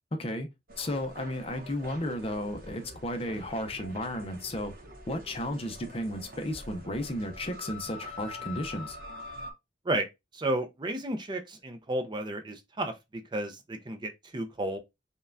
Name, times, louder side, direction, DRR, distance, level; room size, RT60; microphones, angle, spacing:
sound 1, 0.7-9.5, left 1 dB, 55° right, 0.8 m, -45 dB
voice 1, 0.8-4.7 5.1-9.0, left 1 dB, 35° left, 0.6 m, -34 dB
voice 2, 10.3-14.8, right 1 dB, 25° right, 0.5 m, -32 dB
5.3 x 2.3 x 2.5 m
head